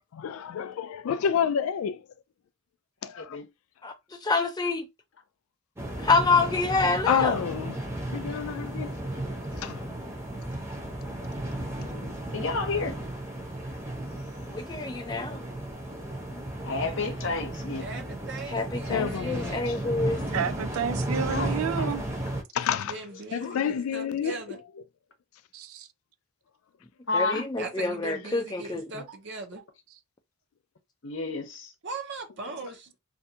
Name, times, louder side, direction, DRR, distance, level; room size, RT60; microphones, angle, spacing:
voice 1, 0.1-2.0 3.0-3.4 7.1-7.8 8.1-9.0 9.6-9.9 11.8-12.1 18.9-19.8 21.8-22.0 22.5-23.0 23.3-24.4 32.4-32.5, left 8 dB, 90° left, 0.3 m, -29 dB
voice 2, 3.2-3.5 12.3-12.9 16.6-17.9 21.3-21.5 23.4-23.6 27.1-27.5 31.0-31.7, left 3 dB, 60° left, 0.7 m, -30 dB
voice 3, 4.2-4.8 6.0-7.3 14.5-15.4 18.5-20.4 27.1-28.9, left 3 dB, 20° left, 0.4 m, -27 dB
sound 1, 5.8-22.4, right 1 dB, 15° right, 0.7 m, -34 dB
voice 4, 17.8-19.7 22.9-24.6 27.6-29.6 31.8-32.9, right 3 dB, 60° right, 0.7 m, -39 dB
voice 5, 20.3-22.0 25.5-25.9, right 7 dB, 90° right, 0.4 m, -30 dB
2.6 x 2.3 x 2.7 m
head